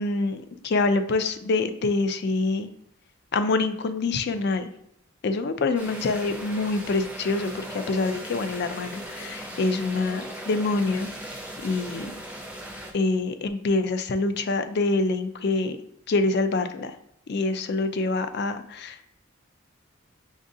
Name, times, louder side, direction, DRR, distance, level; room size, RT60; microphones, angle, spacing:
voice 1, 0.0-2.7 3.3-4.7 5.2-11.4 11.6-12.1 12.9-15.8 16.1-17.0 17.3-19.1, left 3 dB, 55° left, 8 dB, 0.4 m, -26 dB
sound 1, 5.7-12.9, right 1 dB, 5° right, 0.5 m, -38 dB
6.2 x 2.4 x 2.6 m, 0.75 s
head